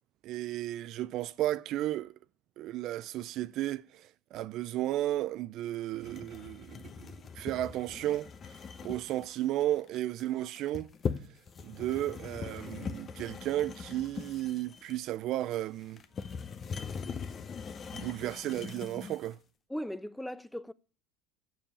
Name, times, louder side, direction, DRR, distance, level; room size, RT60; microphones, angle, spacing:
voice 1, 0.2-2.1 2.6-8.3 8.8-10.9 11.6-16.0 17.9-19.4, right 14 dB, 55° right, 0.4 m, -34 dB
sound 1, 6.0-19.3, left 6 dB, 35° left, 1.0 m, -41 dB
voice 2, 19.7-20.7, equal, 5° left, 0.4 m, -38 dB
7.6 x 7.3 x 8.5 m
supercardioid pair, 100°, 0 cm